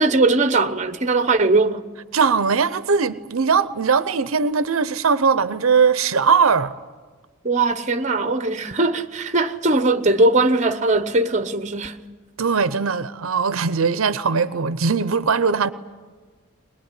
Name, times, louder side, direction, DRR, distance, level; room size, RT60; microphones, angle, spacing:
voice 1, 0.0-1.8 7.4-12.0, right 2 dB, 35° right, 1.0 m, -20 dB
voice 2, 2.1-6.8 12.4-15.7, right 5 dB, 80° right, 0.7 m, -20 dB
22.0 x 21.5 x 9.9 m
head